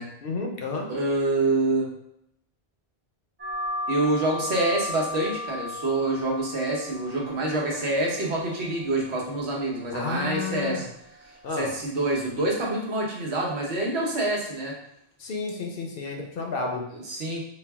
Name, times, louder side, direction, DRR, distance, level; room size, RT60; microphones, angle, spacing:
voice 1, 0.2-0.9 9.9-10.9 11.4-11.7 15.2-16.8, left 4 dB, 65° left, 1 dB, 0.8 m, -31 dB
voice 2, 0.9-1.9 3.9-10.9 11.2-14.8 16.9-17.4, right 2 dB, 80° right, -2 dB, 1.1 m, -26 dB
sound 1, 3.4-12.5, left 2 dB, 15° right, 0.6 m, -38 dB
4.4 x 2.0 x 3.4 m, 0.77 s
omnidirectional pair, 1.1 m